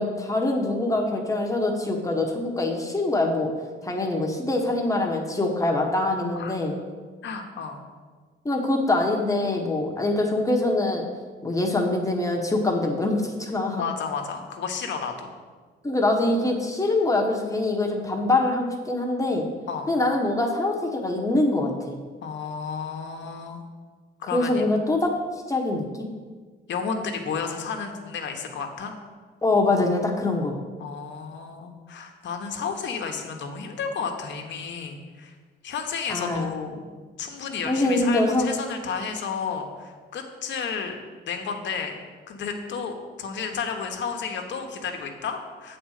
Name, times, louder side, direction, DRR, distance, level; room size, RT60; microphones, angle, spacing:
voice 1, 0.0-3.5 3.8-6.8 8.4-11.1 11.4-13.8 15.8-19.5 19.9-22.0 24.3-25.1 25.5-26.1 29.4-30.6 36.1-36.5 37.6-38.5, left 2 dB, 15° left, 1 dB, 1.2 m, -24 dB
voice 2, 7.2-7.8 13.8-15.3 19.7-19.9 22.2-23.6 24.2-24.6 26.7-28.9 30.8-35.3 35.6-36.8 37.2-40.9 41.3-41.9 42.3-45.8, left 6 dB, 65° left, 4 dB, 1.1 m, -32 dB
7.9 x 4.3 x 6.5 m, 1.5 s
cardioid pair, 90°, 20 cm